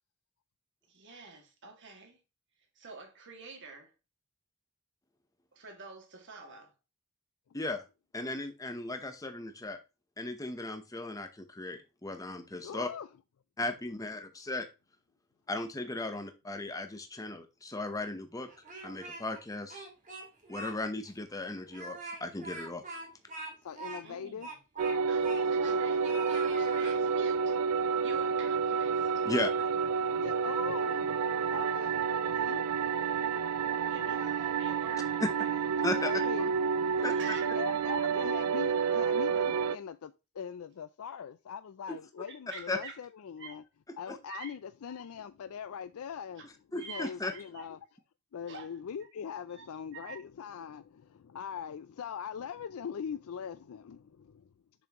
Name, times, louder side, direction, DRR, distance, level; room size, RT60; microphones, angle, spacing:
voice 1, 0.9-2.2 2.8-3.9 5.5-6.7 24.0-24.6 25.1-27.6 28.0-29.2 33.9-36.5 37.0-37.5 41.9-42.0 42.3-43.0 43.4-43.6 44.3-44.6 46.4-46.5 46.8-47.6 48.5-48.7 49.5-49.7 49.9-50.2, right 4 dB, 55° right, 2.2 m, -47 dB
voice 2, 8.1-9.8 10.2-12.9 13.6-14.7 15.5-18.5 18.8-19.9 20.5-23.0 29.2-29.7 35.8-36.1 37.0-37.1 42.7-42.8 46.7-47.3, left 2 dB, 15° left, 0.8 m, -36 dB
voice 3, 12.5-13.1 16.1-16.2 23.6-24.5 25.6-26.1 30.1-31.1 31.5-32.0 32.4-32.6 36.0-36.5 37.5-43.6 44.0-46.4 46.7-47.8 48.3-54.5, left 7 dB, 70° left, 0.4 m, -41 dB
Speech, 18.5-19.4 19.7-20.7 21.1-21.2 21.7-25.8 26.0-27.0, right 3 dB, 35° right, 2.1 m, -43 dB
sound 1, 24.8-39.8, right 6 dB, 80° right, 0.4 m, -29 dB
6.9 x 6.2 x 3.0 m
head